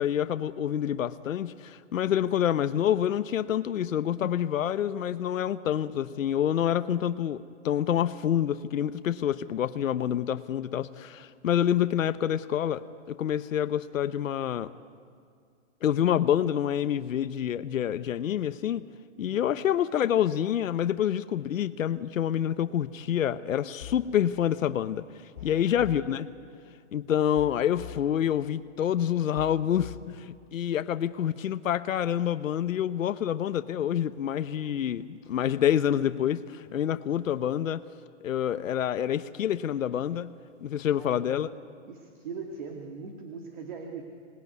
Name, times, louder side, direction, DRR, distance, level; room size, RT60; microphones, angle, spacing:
voice 1, 0.0-14.7 15.8-18.8 19.2-25.0 25.4-26.3 26.9-37.8 38.2-40.3 40.6-41.5, left 10 dB, 85° left, 12 dB, 1.0 m, -27 dB
sound 1, 23.8-24.2 25.4-26.2 27.4-28.2 29.4-30.2, left 10 dB, 40° left, 2.6 m, -44 dB
voice 2, 25.4-25.8 40.9-41.6 41.9-44.0, right 5 dB, 35° right, 2 dB, 2.1 m, -41 dB
26.5 x 20.0 x 9.5 m, 2.2 s
hypercardioid pair, 180°, 38 cm